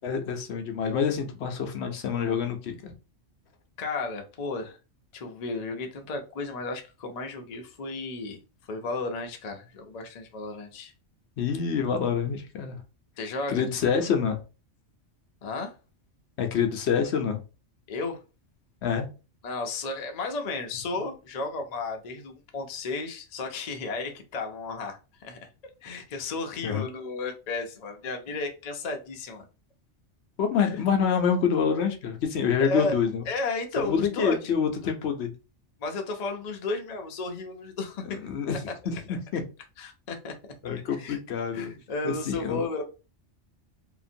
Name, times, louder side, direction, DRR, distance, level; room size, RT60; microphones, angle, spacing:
voice 1, 0.0-2.9 11.4-12.8 13.5-14.4 16.4-17.4 18.8-19.1 26.6-26.9 30.4-33.2 33.8-35.3 38.2-38.6 38.9-39.4 40.6-41.7 42.0-42.6, left 6 dB, 70° left, 0.9 m, -27 dB
voice 2, 3.8-4.8 5.1-8.4 8.7-10.9 13.2-13.7 15.4-15.7 17.9-18.2 19.4-25.4 25.8-29.4 30.6-30.7 32.6-32.9 33.3-34.4 34.8-34.9 35.8-38.2 38.5-38.7 39.1-39.2 39.8-40.5 41.0-41.2 41.5-42.8, left 3 dB, 50° left, 0.5 m, -33 dB
2.9 x 2.5 x 2.6 m
omnidirectional pair, 1.2 m